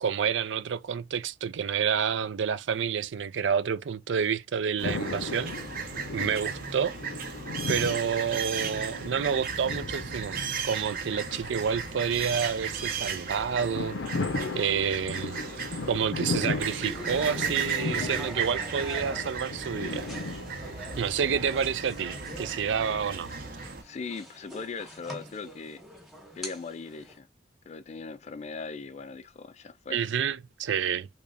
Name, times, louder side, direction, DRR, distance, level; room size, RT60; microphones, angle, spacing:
voice 1, 0.0-5.5 5.8-7.0 7.7-14.0 14.6-15.4 15.9-20.1 21.0-23.3 29.9-31.1, right 7 dB, 80° right, 0.4 m, -29 dB
sound 1, 4.8-23.7, left 3 dB, 90° left, 0.6 m, -37 dB
sound 2, 4.8-23.8, right 6 dB, 55° right, 0.8 m, -36 dB
sound 3, 16.7-27.2, equal, ahead, 1.1 m, -44 dB
voice 2, 23.8-25.8 26.4-27.3 27.7-30.0, left 4 dB, 35° left, 0.3 m, -39 dB
3.4 x 2.9 x 2.6 m
head